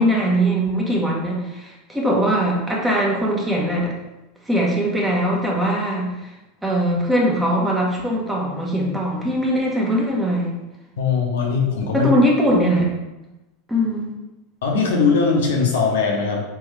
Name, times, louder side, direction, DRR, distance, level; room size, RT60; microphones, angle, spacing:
voice 1, 0.0-3.9 4.5-6.3 6.6-10.5 11.9-12.9 13.7-14.1, equal, 10° right, -3 dB, 1.1 m, -21 dB
voice 2, 11.0-12.1 14.6-16.4, left 5 dB, 75° left, -1 dB, 0.8 m, -20 dB
3.4 x 3.4 x 3.2 m, 1.0 s
hypercardioid pair, 95°, 0 cm